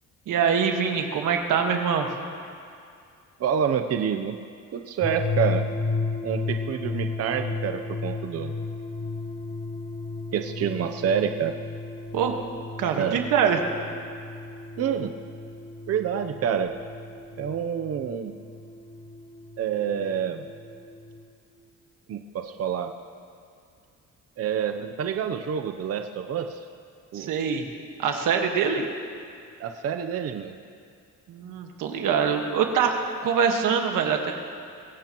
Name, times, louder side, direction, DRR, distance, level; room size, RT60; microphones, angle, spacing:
voice 1, 0.3-2.1 12.1-12.3 12.8-13.6 27.1-27.6 28.0-28.8 31.3-34.3, right 7 dB, 90° right, 3 dB, 1.5 m, -24 dB
voice 2, 3.4-4.4 4.7-5.7 6.2-8.5 10.3-11.5 13.0-13.2 14.8-15.2 15.9-16.8 17.4-18.3 19.6-20.5 22.1-22.9 24.4-26.6 27.1-27.4 29.6-30.5, right 8 dB, 50° right, 7 dB, 0.7 m, -27 dB
sound 1, 5.0-21.2, left 3 dB, 20° left, 2.4 m, -34 dB
23.5 x 16.5 x 3.0 m, 2.4 s
cardioid pair, 125°, 31 cm